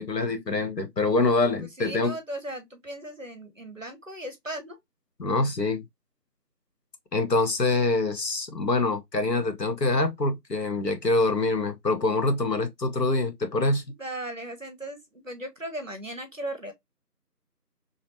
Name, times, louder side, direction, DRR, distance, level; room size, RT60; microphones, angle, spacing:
voice 1, 0.0-2.2 5.2-5.8 7.1-13.8, left 2 dB, 85° left, 1.1 m, -25 dB
voice 2, 1.8-4.8 14.0-16.7, right 1 dB, 50° right, 1.0 m, -37 dB
3.0 x 2.9 x 2.7 m
figure-of-eight pair, 180°, 48 cm